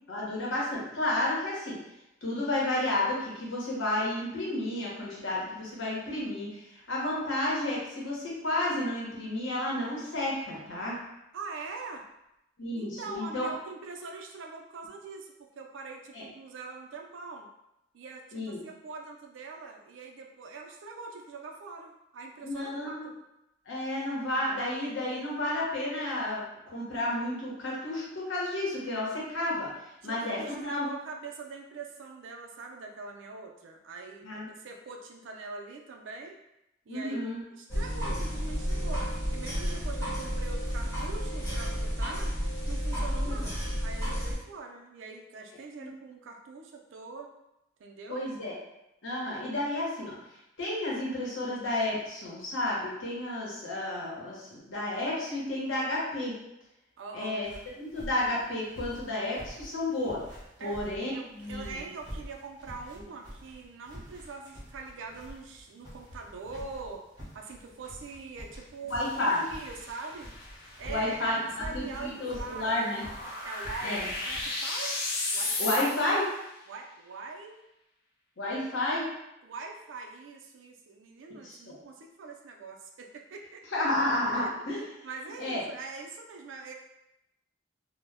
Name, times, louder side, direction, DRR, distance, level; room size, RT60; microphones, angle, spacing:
voice 1, 0.1-1.8 2.2-11.0 12.6-13.5 16.1-16.2 18.3-18.6 22.4-23.1 23.7-29.7 30.0-30.9 34.2-34.5 36.9-37.4 43.1-43.5 45.8-45.9 48.1-48.5 49.0-50.2 50.6-56.4 57.1-57.5 57.8-60.2 60.6-61.8 63.0-63.1 68.9-69.5 70.9-73.0 73.8-74.1 75.6-76.3 78.4-79.1 81.4-81.8 83.7-84.8 85.4-85.6, left 1 dB, 80° left, -5 dB, 0.9 m, -31 dB
voice 2, 11.3-12.1 12.7-17.5 17.9-23.1 30.0-36.4 36.9-42.4 42.7-47.3 47.8-48.2 57.0-57.4 60.6-60.8 61.1-67.0 67.3-70.3 70.8-72.8 73.4-73.9 74.2-75.0 75.3-75.6 76.7-77.6 79.4-83.6 84.3-84.5 85.0-86.7, right 4 dB, 75° right, 2 dB, 0.4 m, -43 dB
sound 1, 37.7-44.4, equal, 15° left, 1.0 m, -31 dB
sound 2, 57.4-74.6, equal, 25° right, 0.7 m, -47 dB
sound 3, 68.9-76.3, left 2 dB, 50° left, 0.5 m, -36 dB
2.1 x 2.1 x 3.4 m, 0.87 s
head